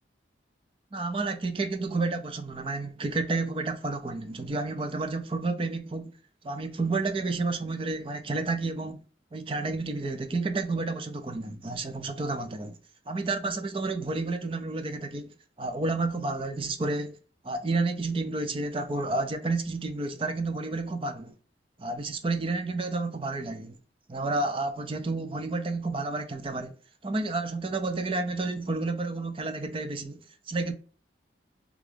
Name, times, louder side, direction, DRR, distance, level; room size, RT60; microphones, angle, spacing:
voice 1, 0.9-6.1 6.4-9.0 9.3-12.8 13.1-17.2 17.4-21.3 21.8-23.8 24.1-26.7 27.0-30.7, right 3 dB, 30° right, 0.4 m, -30 dB
3.7 x 2.4 x 3.3 m
head